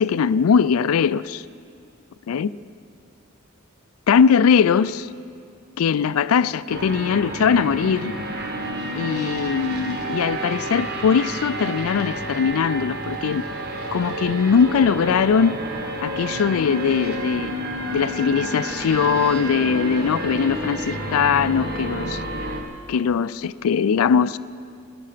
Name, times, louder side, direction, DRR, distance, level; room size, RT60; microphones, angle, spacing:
voice 1, 0.0-1.4 2.3-2.5 4.1-5.1 5.8-8.1 9.0-13.4 13.9-15.6 16.0-17.6 17.9-22.2 22.9-24.4, left 6 dB, 85° left, 0.4 m, -20 dB
sound 1, 6.7-22.6, right 1 dB, 50° right, 1.6 m, -30 dB
19.0 x 13.0 x 5.1 m
head